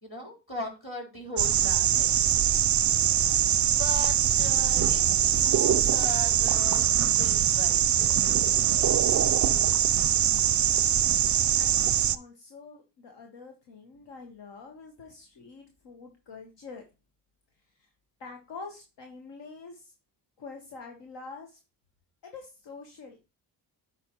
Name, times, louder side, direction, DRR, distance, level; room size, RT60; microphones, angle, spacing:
voice 1, 0.0-2.3 3.6-8.2, left 1 dB, 30° left, 0 dB, 3.9 m, -39 dB
sound 1, 1.4-12.2, right 10 dB, 45° right, 0.4 m, -23 dB
voice 2, 10.1-10.9 11.6-11.8 12.1-16.8 17.8-17.9 18.2-19.9 20.4-21.6 22.2-23.2, left 4 dB, 70° left, 3 dB, 1.1 m, -46 dB
9.5 x 4.4 x 3.0 m, 0.29 s
supercardioid pair, 50°, 45 cm